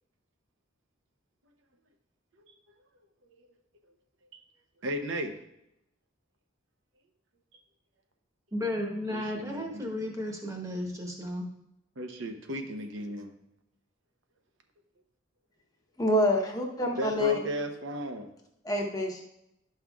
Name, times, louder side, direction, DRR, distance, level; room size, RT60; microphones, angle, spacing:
voice 1, 4.8-5.3 9.1-9.8 12.0-13.3 17.0-18.3, equal, 75° right, 5 dB, 0.8 m, -35 dB
voice 2, 8.5-11.5, left 1 dB, 15° right, 1 dB, 1.1 m, -34 dB
voice 3, 16.0-17.3 18.6-19.2, left 1 dB, 20° left, 1 dB, 0.9 m, -27 dB
11.5 x 5.6 x 2.3 m, 0.82 s
head